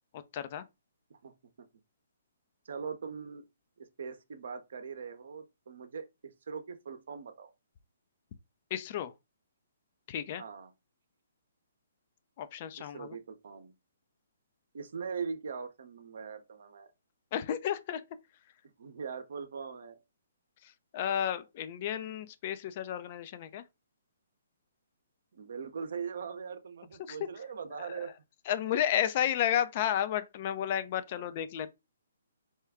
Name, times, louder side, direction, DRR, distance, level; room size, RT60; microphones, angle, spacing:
voice 1, 0.1-0.6 8.7-9.1 10.1-10.4 12.4-13.2 17.3-18.0 20.6-23.6 27.0-27.3 27.8-27.9 28.5-31.7, left 10 dB, 40° left, 0.5 m, -32 dB
voice 2, 2.6-3.5 3.8-6.1 6.5-7.5 10.4-10.7 12.8-13.7 14.7-16.9 18.8-20.0 25.3-28.1 31.1-31.3, right 6 dB, 65° right, 0.7 m, -41 dB
4.3 x 2.3 x 3.5 m
hypercardioid pair, 140°, 0 cm